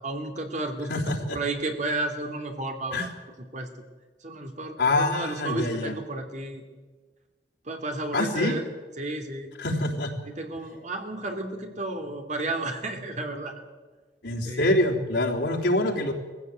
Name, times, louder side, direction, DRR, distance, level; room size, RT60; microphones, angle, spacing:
voice 1, 0.0-0.9 1.3-3.1 3.5-3.7 4.2-6.6 7.7-8.6 9.0-9.5 10.3-13.5 14.4-14.7, right 2 dB, 45° right, 5 dB, 2.6 m, -32 dB
voice 2, 0.9-1.4 2.9-3.1 4.8-6.0 8.1-8.6 9.6-10.1 14.2-16.1, left 1 dB, 85° left, -1 dB, 3.6 m, -25 dB
20.0 x 15.5 x 9.1 m, 1.4 s
head